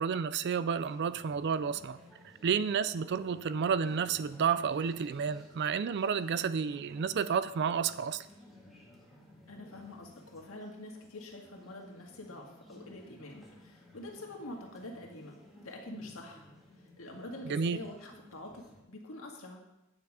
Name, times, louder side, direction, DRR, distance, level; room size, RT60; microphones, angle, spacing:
voice 1, 0.0-2.0 2.4-8.3 17.5-17.8, right 6 dB, 55° right, 15 dB, 0.4 m, -31 dB
sound 1, 0.8-18.8, left 1 dB, ahead, 1.9 m, -56 dB
voice 2, 9.5-16.5 16.8-19.6, left 1 dB, 70° left, 0 dB, 1.9 m, -46 dB
9.3 x 7.2 x 4.9 m, 0.93 s
head